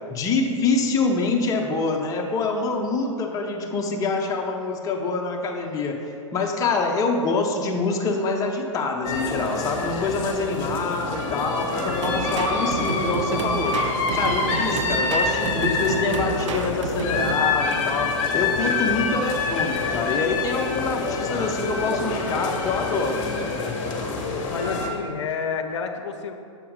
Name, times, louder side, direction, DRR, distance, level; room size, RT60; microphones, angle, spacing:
voice 1, 0.1-13.8 14.1-23.4, left 3 dB, 20° left, 2 dB, 0.7 m, -26 dB
sound 1, 9.0-24.9, left 4 dB, 40° left, 1.0 m, -26 dB
sound 2, 12.0-17.5, right 5 dB, 65° right, 0.6 m, -30 dB
voice 2, 24.5-26.3, left 6 dB, 60° left, 6 dB, 0.6 m, -29 dB
7.1 x 4.5 x 3.7 m, 2.5 s
hypercardioid pair, 110°, 17 cm